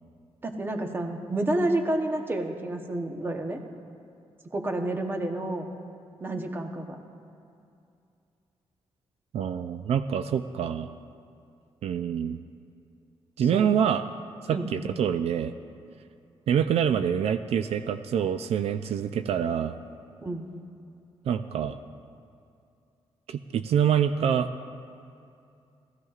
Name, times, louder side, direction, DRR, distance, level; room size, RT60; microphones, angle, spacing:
voice 1, 0.4-3.6 4.5-5.7 6.2-7.0 13.4-13.7 14.5-14.7 20.2-20.4, right 1 dB, 20° right, 4 dB, 0.9 m, -29 dB
voice 2, 9.3-10.9 11.8-12.4 13.4-14.0 14.4-15.5 16.5-19.7 21.2-21.8 23.3-24.5, right 8 dB, 75° right, 9 dB, 0.4 m, -26 dB
19.0 x 14.5 x 2.4 m, 2.5 s
wide cardioid pair, 175°, 11 cm